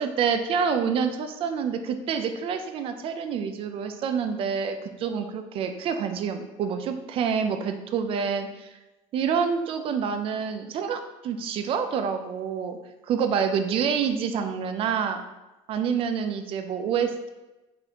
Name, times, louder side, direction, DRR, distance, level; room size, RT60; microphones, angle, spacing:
voice 1, 0.0-8.7 9.1-12.8 13.1-15.2 15.7-17.3, right 6 dB, 45° right, 7 dB, 0.4 m, -27 dB
4.0 x 3.3 x 2.8 m, 1.1 s
cardioid pair, 140°, 13 cm